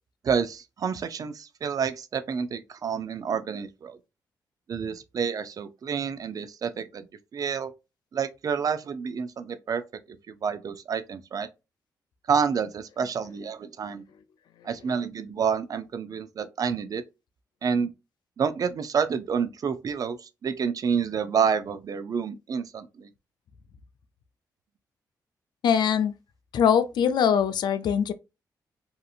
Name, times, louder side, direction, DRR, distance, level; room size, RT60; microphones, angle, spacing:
voice 1, 0.2-4.0 4.7-7.1 7.3-7.7 8.1-9.8 10.3-11.5 12.3-14.0 14.6-17.0 17.6-17.9 18.4-23.1, right 6 dB, 55° right, 0.4 m, -28 dB
voice 2, 25.6-26.1 26.5-28.1, left 8 dB, 75° left, 0.3 m, -22 dB
2.8 x 2.5 x 2.3 m
cardioid pair, 75°, 8 cm